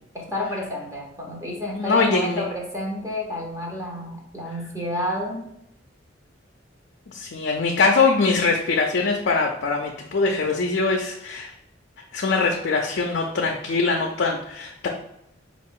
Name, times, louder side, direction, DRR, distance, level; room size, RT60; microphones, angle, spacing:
voice 1, 0.1-5.4, left 1 dB, 15° right, -2 dB, 0.8 m, -30 dB
voice 2, 1.7-2.4 7.1-11.5 12.1-14.9, left 4 dB, 60° left, 1 dB, 0.5 m, -22 dB
4.8 x 2.4 x 3.6 m, 0.79 s
head